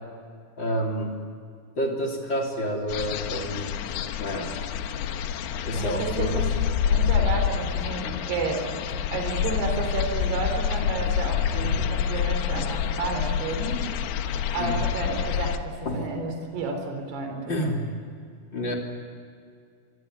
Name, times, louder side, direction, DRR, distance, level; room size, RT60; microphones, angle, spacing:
voice 1, 0.6-1.2 1.8-3.8 4.2-4.5 5.6-6.5 11.5-11.8 14.6-14.8 15.8-16.1 17.5-17.8 18.5-18.7, equal, 25° left, 1 dB, 3.3 m, -29 dB
sound 1, 2.9-15.6, left 8 dB, 70° left, 2.6 m, -27 dB
voice 2, 5.7-6.5 6.9-8.7 9.1-13.8 14.5-17.5, right 3 dB, 55° right, 4 dB, 5.6 m, -31 dB
26.5 x 23.5 x 9.6 m, 2.2 s
omnidirectional pair, 5.7 m